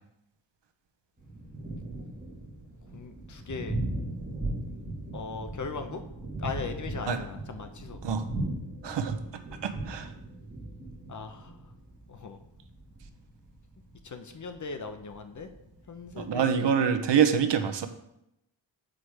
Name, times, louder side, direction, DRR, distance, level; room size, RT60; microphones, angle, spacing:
Thunder, 1.2-16.5, right 1 dB, 15° right, 1.9 m, -38 dB
voice 1, 2.9-3.8 5.1-6.0 6.4-8.0 11.1-11.5 12.1-12.4 14.0-15.5 15.9-16.8, left 4 dB, 40° left, 7 dB, 0.8 m, -39 dB
voice 2, 8.8-9.2 9.6-10.1 16.2-17.9, right 7 dB, 65° right, 8 dB, 0.9 m, -25 dB
7.8 x 5.0 x 4.9 m, 0.82 s
wide cardioid pair, 125°, 46 cm